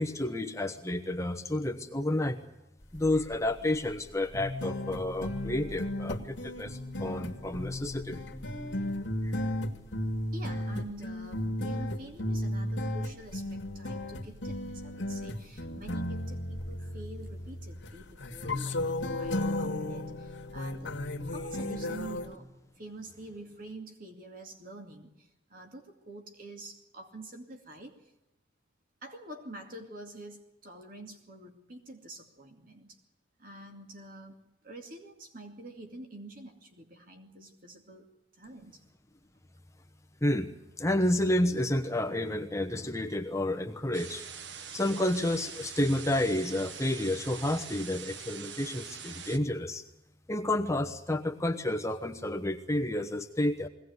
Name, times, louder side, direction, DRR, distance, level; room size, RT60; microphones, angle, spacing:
voice 1, 0.0-2.4 2.9-8.2 9.2-9.4 40.2-40.5 40.8-44.2 44.7-49.8 50.3-53.7, left 1 dB, 15° left, 7 dB, 1.1 m, -30 dB
sound 1, 3.0-3.3 3.6-3.7 4.3-22.3, left 1 dB, 80° left, 2.1 m, -35 dB
voice 2, 10.3-21.0 21.3-22.5 22.8-28.1 29.0-33.0 33.4-38.1 38.3-38.8, right 1 dB, 50° right, 4 dB, 2.5 m, -47 dB
sound 2, 43.9-49.4, right 7 dB, 70° right, 1.5 m, -44 dB
22.0 x 18.0 x 9.5 m, 0.88 s
head